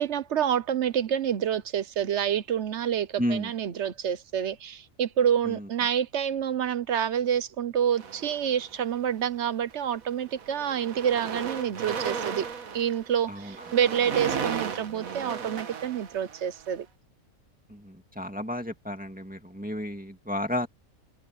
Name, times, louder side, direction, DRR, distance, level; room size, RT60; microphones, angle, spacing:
voice 1, 0.0-12.5 12.7-16.9, right 9 dB, 60° right, 1.0 m, -28 dB
voice 2, 3.2-3.5 5.5-5.7 13.3-13.5 17.7-20.7, left 1 dB, 5° right, 2.0 m, -32 dB
sound 1, 7.9-8.9 9.7-9.9 10.2-16.7, right 6 dB, 80° right, 1.8 m, -35 dB
open air
omnidirectional pair, 1.5 m